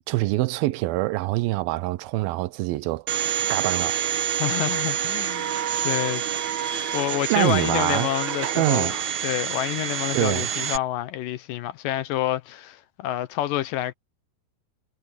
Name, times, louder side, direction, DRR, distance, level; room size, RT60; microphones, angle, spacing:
voice 1, 0.1-3.1 3.5-4.0 7.3-8.1 8.6-8.9 10.1-10.5, right 19 dB, 80° right, 2.5 m, -24 dB
Domestic sounds home sounds, 3.1-10.8, right 9 dB, 60° right, 2.3 m, -27 dB
voice 2, 4.4-5.5 5.8-6.2 6.7-9.0 9.2-13.9, left 14 dB, 75° left, 2.4 m, -28 dB
omnidirectional pair, 4.2 m